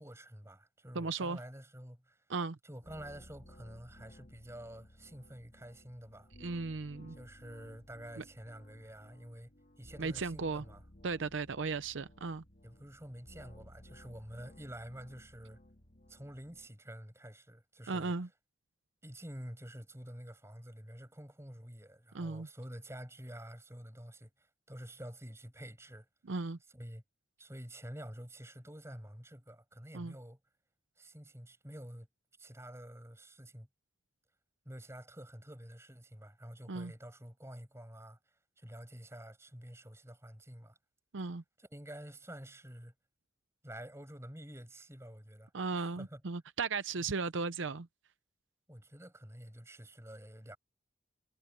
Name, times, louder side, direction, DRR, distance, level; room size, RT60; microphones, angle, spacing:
voice 1, 0.0-2.2 2.6-6.3 7.1-9.5 9.8-10.8 12.6-15.6 16.1-18.1 19.0-26.1 26.7-27.0 27.4-30.4 31.0-32.1 32.4-33.7 34.6-40.8 41.6-42.9 43.6-45.5 46.0-46.2 48.7-50.6, equal, 15° right, 6.1 m, -49 dB
voice 2, 0.9-1.4 2.3-2.6 6.4-7.2 8.2-8.3 10.0-10.6 11.0-12.4 17.9-18.3 22.1-22.5 26.3-26.6 29.9-30.1 36.7-36.9 41.1-41.4 45.5-47.9, right 4 dB, 75° right, 0.7 m, -36 dB
sound 1, 2.8-16.7, left 1 dB, 45° left, 2.3 m, -57 dB
head